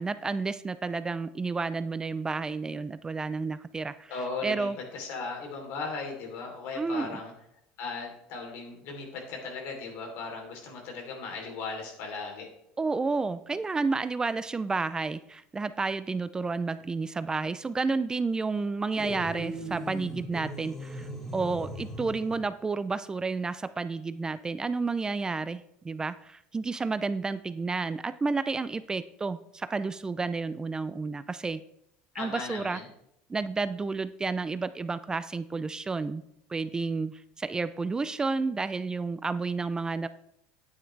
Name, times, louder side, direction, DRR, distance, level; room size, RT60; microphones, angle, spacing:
voice 1, 0.0-4.1 4.4-4.8 6.8-7.2 12.8-31.6 32.1-32.8 33.3-36.2 36.5-40.1, right 4 dB, 15° right, 14 dB, 0.3 m, -31 dB
voice 2, 4.1-7.3 7.8-12.5 32.1-32.8, left 4 dB, 70° left, 2 dB, 3.1 m, -37 dB
sound 1, 19.0-22.5, equal, 10° left, 1.9 m, -39 dB
9.4 x 9.2 x 3.2 m, 0.77 s
supercardioid pair, 115°, 4 cm